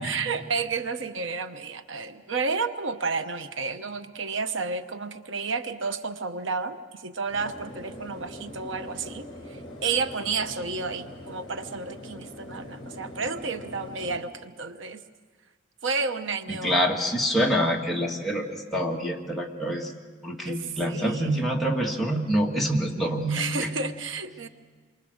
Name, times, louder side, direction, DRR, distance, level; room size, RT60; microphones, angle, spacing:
voice 1, 0.0-15.0 15.8-16.8 20.5-21.4 23.3-24.5, right 4 dB, 85° right, 9 dB, 1.0 m, -31 dB
sound 1, 7.3-14.2, left 1 dB, 30° left, 3.7 m, -42 dB
voice 2, 16.5-19.9 20.2-23.4, equal, ahead, -3 dB, 1.9 m, -26 dB
28.5 x 23.5 x 6.5 m, 1.5 s
head